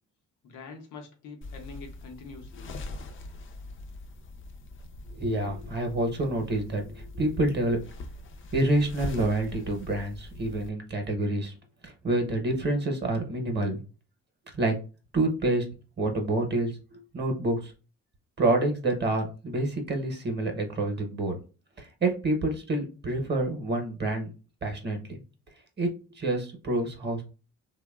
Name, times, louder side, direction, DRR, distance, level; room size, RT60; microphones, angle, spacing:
voice 1, 0.4-2.7, left 4 dB, 85° left, 4 dB, 0.8 m, -45 dB
sound 1, 1.4-10.7, left 2 dB, 40° left, 0.5 m, -42 dB
voice 2, 5.2-7.8 8.5-11.5 11.8-13.8 14.5-14.7 15.1-15.7 16.0-17.7 18.4-21.4 21.8-24.3 24.6-25.2 25.8-25.9 26.2-27.2, right 2 dB, 35° right, 4 dB, 0.8 m, -28 dB
2.8 x 2.2 x 2.2 m, 0.34 s
cardioid pair, 90°, 30 cm